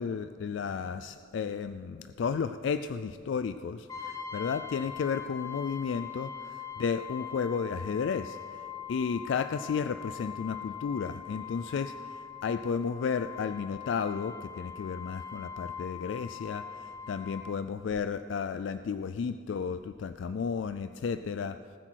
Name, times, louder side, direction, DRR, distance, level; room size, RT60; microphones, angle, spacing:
voice 1, 0.0-21.6, left 6 dB, 65° left, 11 dB, 0.3 m, -33 dB
Brass instrument, 3.9-17.5, left 7 dB, 15° left, 1.2 m, -42 dB
19.0 x 8.9 x 4.6 m, 2.3 s
head